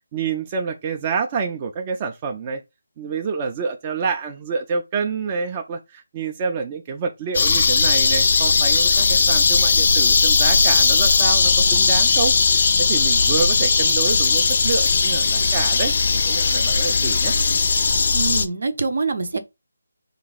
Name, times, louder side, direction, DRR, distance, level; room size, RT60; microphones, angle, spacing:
voice 1, 0.1-2.6 3.0-17.4, right 5 dB, 25° right, 0.4 m, -27 dB
sound 1, 7.3-18.5, left 4 dB, 50° left, 0.4 m, -18 dB
voice 2, 18.1-19.4, right 4 dB, 60° right, 0.6 m, -24 dB
3.0 x 2.3 x 4.0 m
figure-of-eight pair, 160°, 0 cm